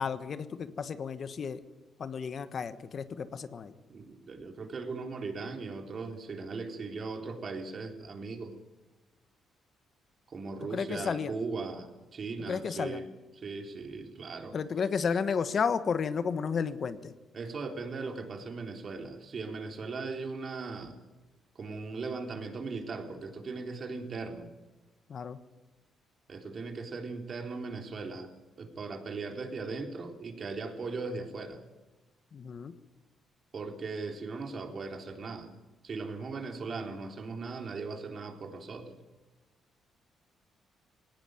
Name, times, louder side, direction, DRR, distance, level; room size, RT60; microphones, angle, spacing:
voice 1, 0.0-1.6 2.0-3.7 10.7-11.3 12.5-13.0 14.5-17.1 25.1-25.4 32.3-32.7, left 6 dB, 50° left, 12 dB, 1.3 m, -32 dB
voice 2, 3.9-8.5 10.3-13.1 13.4-14.6 17.3-21.0 21.6-24.5 26.3-28.3 28.6-31.6 33.5-35.5 35.8-38.9, right 4 dB, 45° right, 4 dB, 3.7 m, -38 dB
19.0 x 18.5 x 9.2 m, 1.1 s
cardioid pair, 90°, 0 cm